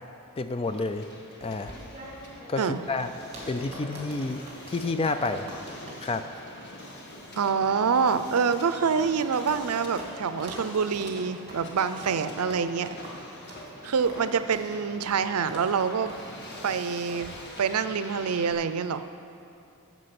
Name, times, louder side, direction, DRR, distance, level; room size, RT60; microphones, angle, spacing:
voice 1, 0.4-1.0 1.4-1.8 2.5-3.1 3.5-5.5 6.0-6.3, left 3 dB, 25° left, 9 dB, 0.3 m, -29 dB
Hiss, 0.6-18.5, left 1 dB, 50° left, 1.5 m, -45 dB
sound 1, 1.4-9.7 10.0-10.1 10.4-10.7 10.9-11.1 11.5-11.6 12.0-12.2 12.5-12.7 13.0-13.2 13.5-13.7 14.0-14.2 14.5-14.7 15.1-15.2 15.5-15.7 16.0-16.2 16.5-16.7 17.1-17.3, right 1 dB, 30° right, 2.7 m, -44 dB
voice 2, 7.3-13.0 13.8-16.1 16.6-17.3 17.6-19.0, right 6 dB, 90° right, 12 dB, 0.5 m, -26 dB
13.0 x 7.4 x 5.9 m, 2.6 s
head